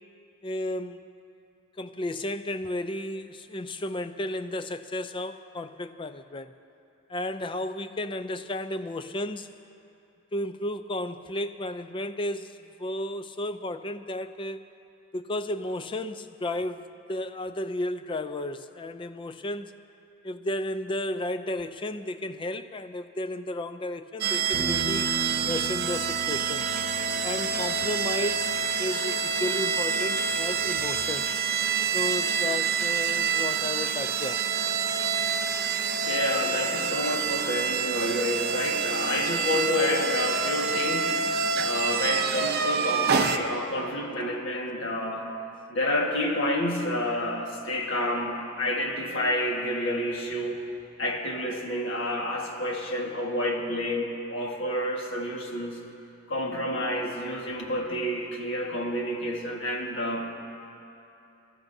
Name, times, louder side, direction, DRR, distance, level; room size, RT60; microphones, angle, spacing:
voice 1, 0.4-1.0 1.8-6.5 7.1-9.5 10.3-14.7 15.1-19.7 20.2-25.1 25.5-26.7 27.2-28.5 28.8-31.3 31.9-34.5, left 1 dB, 25° left, 10 dB, 0.4 m, -33 dB
sound 1, 24.2-43.4, right 6 dB, 50° right, 0.6 m, -27 dB
sound 2, 24.5-30.8, equal, 5° right, 2.9 m, -39 dB
voice 2, 36.0-45.3 45.7-50.6 51.0-55.8 56.3-60.3, left 1 dB, 65° left, 0 dB, 1.6 m, -29 dB
24.5 x 13.5 x 2.7 m, 2.7 s
head